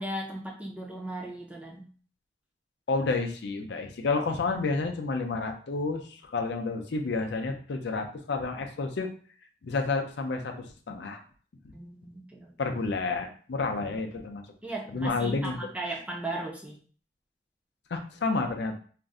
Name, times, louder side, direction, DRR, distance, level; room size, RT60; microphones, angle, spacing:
voice 1, 0.0-1.9 11.7-12.5 14.6-16.8, right 1 dB, 10° right, -1 dB, 0.4 m, -37 dB
voice 2, 2.9-9.1 9.6-11.2 12.6-14.4 14.9-15.6 17.9-18.7, left 3 dB, 70° left, 5 dB, 0.4 m, -30 dB
2.5 x 2.0 x 3.5 m, 0.43 s
head